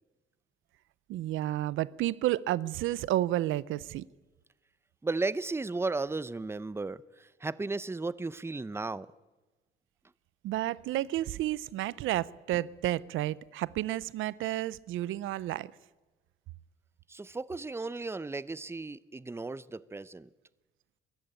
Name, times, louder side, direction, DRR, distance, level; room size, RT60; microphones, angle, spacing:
voice 1, 1.1-4.0 10.4-15.7, right 14 dB, 85° right, 0.6 m, -31 dB
voice 2, 5.0-9.1 17.1-20.3, right 3 dB, 10° right, 0.7 m, -35 dB
23.0 x 14.0 x 9.0 m
cardioid pair, 90°, 20 cm